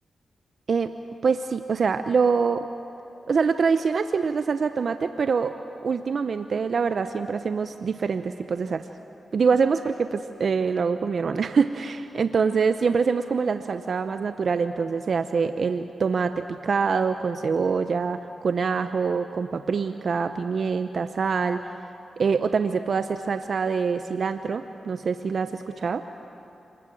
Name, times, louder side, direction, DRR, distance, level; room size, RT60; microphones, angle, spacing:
voice 1, 1.2-2.7 3.3-5.6 5.8-8.9 9.3-21.6 22.2-26.0, right 5 dB, 65° right, 9 dB, 0.7 m, -25 dB
27.0 x 20.5 x 7.8 m, 2.9 s
supercardioid pair, 45°, 0 cm